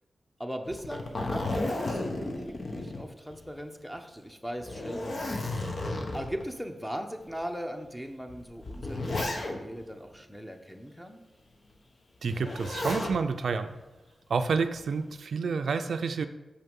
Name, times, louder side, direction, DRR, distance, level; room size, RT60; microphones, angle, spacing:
voice 1, 0.4-5.8 6.1-11.2, equal, ahead, 5 dB, 0.9 m, -39 dB
Zipper (clothing), 0.7-3.6 4.0-4.1 4.6-6.4 7.2-7.3 8.3-9.8 12.3-13.2 14.6-15.0, left 2 dB, 55° left, 1.1 m, -33 dB
voice 2, 12.2-13.7 14.3-16.3, right 5 dB, 80° right, 8 dB, 0.4 m, -29 dB
6.6 x 5.6 x 5.4 m, 1.1 s
wide cardioid pair, 80°, 0 cm